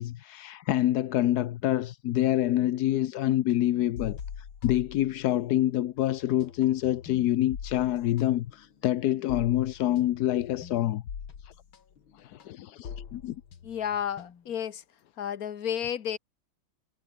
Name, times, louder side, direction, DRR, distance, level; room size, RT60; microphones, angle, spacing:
voice 1, 0.0-4.2 4.6-11.0 12.2-13.4, left 13 dB, 65° left, 1.0 m, -26 dB
sound 1, 4.0-5.7 6.0-14.6, left 7 dB, 85° left, 2.8 m, -43 dB
voice 2, 13.6-14.8 15.2-16.2, left 9 dB, 50° left, 1.5 m, -32 dB
omnidirectional pair, 2.2 m